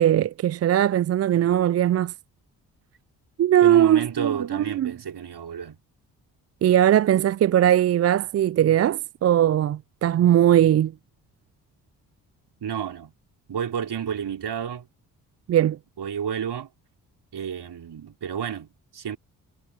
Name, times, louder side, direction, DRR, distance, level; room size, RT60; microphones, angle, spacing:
voice 1, 0.0-2.1 3.4-4.9 6.6-10.9 15.5-15.8, right 11 dB, 35° right, 0.4 m, -20 dB
voice 2, 3.6-5.8 12.6-13.1 13.5-14.9 16.0-16.7 17.3-19.2, right 8 dB, 55° right, 4.4 m, -31 dB
hypercardioid pair, 40°, 48 cm